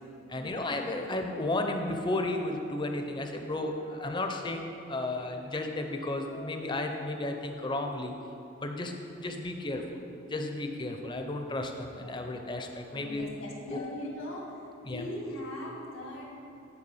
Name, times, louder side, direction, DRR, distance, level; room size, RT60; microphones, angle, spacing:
voice 1, 0.3-8.2 8.6-10.0 10.3-13.3 13.7-14.0 14.8-15.0, left 2 dB, 25° left, 4 dB, 0.5 m, -33 dB
voice 2, 12.9-14.6 14.8-16.4, left 1 dB, 85° left, -3 dB, 1.9 m, -40 dB
9.7 x 4.6 x 5.5 m, 2.7 s
head